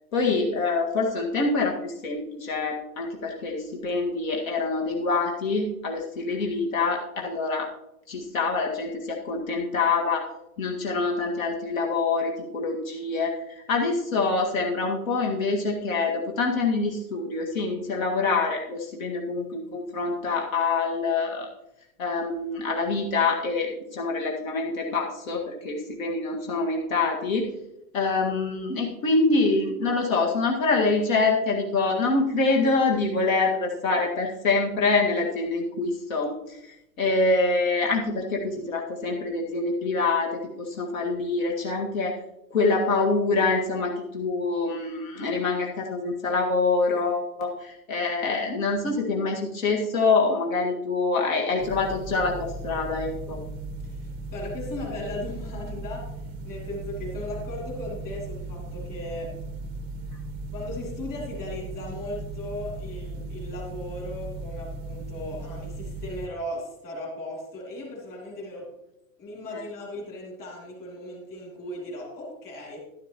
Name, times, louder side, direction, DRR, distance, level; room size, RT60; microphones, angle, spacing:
voice 1, 0.1-7.7 8.1-10.2 10.6-13.3 13.7-21.5 22.0-27.5 27.9-36.6 37.0-40.3 40.6-42.1 42.5-53.4, left 3 dB, 65° left, 0 dB, 2.0 m, -25 dB
sound 1, 51.6-66.3, right 2 dB, 15° right, 0.6 m, -37 dB
voice 2, 53.8-59.4 60.5-68.7 69.2-72.8, left 1 dB, 20° left, -3 dB, 3.0 m, -37 dB
12.0 x 11.5 x 3.0 m, 0.87 s
supercardioid pair, 175°, 44 cm